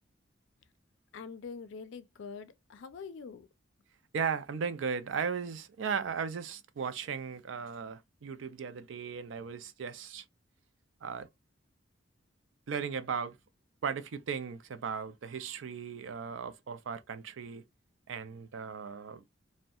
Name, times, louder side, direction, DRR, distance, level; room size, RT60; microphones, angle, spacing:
voice 1, 1.1-3.5, left 5 dB, 70° left, 0.4 m, -44 dB
voice 2, 4.1-10.2 11.0-11.3 12.7-13.4 13.8-17.6 18.1-19.2, right 6 dB, 80° right, 0.4 m, -36 dB
2.6 x 2.1 x 2.3 m
head